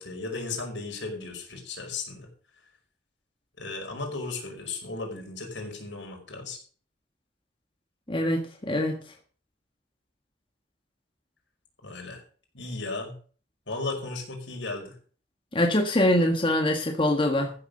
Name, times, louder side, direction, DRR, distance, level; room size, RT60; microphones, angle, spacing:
voice 1, 0.0-2.3 3.6-6.6 11.8-12.2 12.5-13.1 13.7-15.0, left 3 dB, 80° left, 2 dB, 5.5 m, -35 dB
voice 2, 8.1-9.0 15.5-17.5, left 1 dB, 30° left, 3 dB, 1.7 m, -24 dB
14.5 x 7.1 x 6.7 m, 0.41 s
head